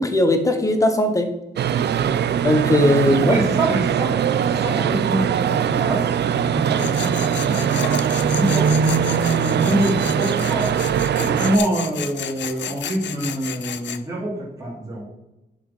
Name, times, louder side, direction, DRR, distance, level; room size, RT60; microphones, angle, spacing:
voice 1, 0.0-1.3 2.4-3.4, left 1 dB, 15° left, 7 dB, 1.0 m, -18 dB
sound 1, 1.6-11.6, right 8 dB, 70° right, 0.5 m, -21 dB
voice 2, 3.0-4.1 4.5-7.9 8.3-10.7 11.0-14.3 14.6-15.0, right 1 dB, 20° right, -7 dB, 3.3 m, -25 dB
Tools, 6.8-14.0, left 9 dB, 85° left, 0.6 m, -33 dB
10.5 x 5.1 x 5.4 m, 0.95 s
wide cardioid pair, 165°, 18 cm